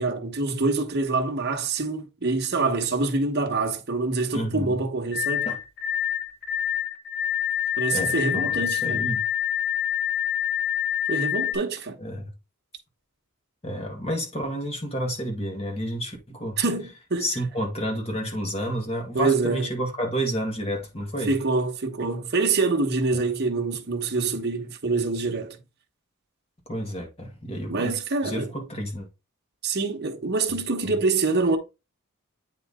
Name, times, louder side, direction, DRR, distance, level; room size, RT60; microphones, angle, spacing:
voice 1, 0.0-5.5 7.8-9.1 11.1-12.0 16.6-17.3 19.1-19.7 21.3-25.6 27.7-28.5 29.6-31.6, right 3 dB, 50° right, 1.2 m, -25 dB
voice 2, 4.3-4.8 5.5-5.6 7.9-9.2 12.0-12.3 13.6-16.6 17.2-21.3 23.1-23.2 26.7-27.9 28.2-29.1 30.9-31.0, equal, 25° left, 2.0 m, -30 dB
sound 1, 5.1-11.6, left 10 dB, 45° left, 1.7 m, -26 dB
8.5 x 4.2 x 3.6 m
head